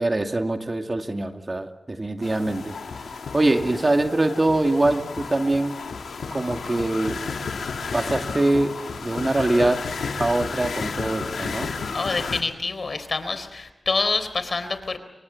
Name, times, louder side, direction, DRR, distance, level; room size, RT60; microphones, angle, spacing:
voice 1, 0.0-2.8 3.3-5.8 6.3-7.3 7.9-9.9 10.2-11.7, right 2 dB, 35° right, 5 dB, 2.3 m, -23 dB
sound 1, 2.2-12.4, left 5 dB, 85° left, 2.5 m, -32 dB
voice 2, 11.9-15.0, left 3 dB, 60° left, 11 dB, 3.8 m, -26 dB
27.0 x 24.0 x 8.7 m, 1.1 s
cardioid pair, 50°, 0 cm